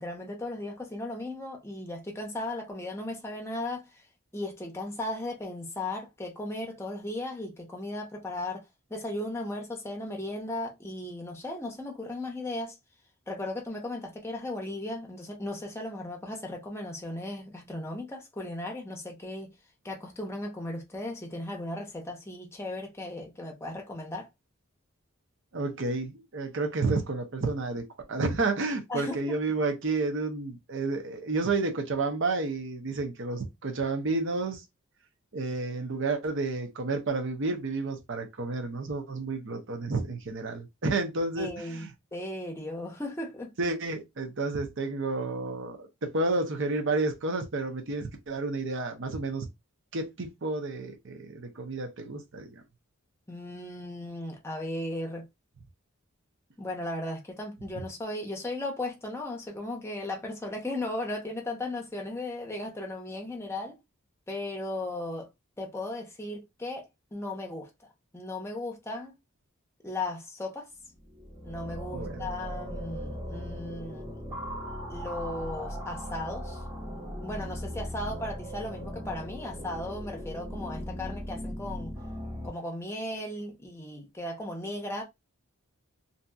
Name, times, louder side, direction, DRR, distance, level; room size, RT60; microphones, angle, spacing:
voice 1, 0.0-4.0 4.3-8.6 8.9-12.8 13.3-19.5 19.8-24.3 28.9-29.3 41.4-43.5 53.3-55.3 56.6-63.8 64.3-65.3 65.6-66.8 67.1-67.7 68.1-69.1 69.8-70.7 71.4-74.2 74.9-76.6 77.2-81.9 82.4-85.0, left 1 dB, 10° left, 0.6 m, -36 dB
voice 2, 25.5-27.8 28.1-34.6 35.3-41.9 43.6-49.5 49.9-52.6 71.9-72.2, right 3 dB, 60° right, 0.7 m, -31 dB
sound 1, 70.9-82.5, equal, 10° right, 1.2 m, -38 dB
2.7 x 2.6 x 2.2 m
head